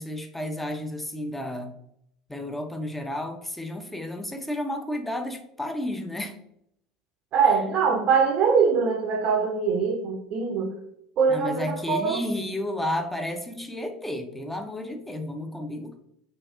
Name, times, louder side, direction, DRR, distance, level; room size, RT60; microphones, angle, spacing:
voice 1, 0.0-1.7 2.3-6.4 11.3-16.0, left 1 dB, 5° left, 5 dB, 0.5 m, -32 dB
voice 2, 7.3-10.7 11.2-12.2, right 5 dB, 45° right, 1 dB, 0.6 m, -23 dB
4.1 x 2.6 x 2.4 m, 0.74 s
figure-of-eight pair, 70°, 2 cm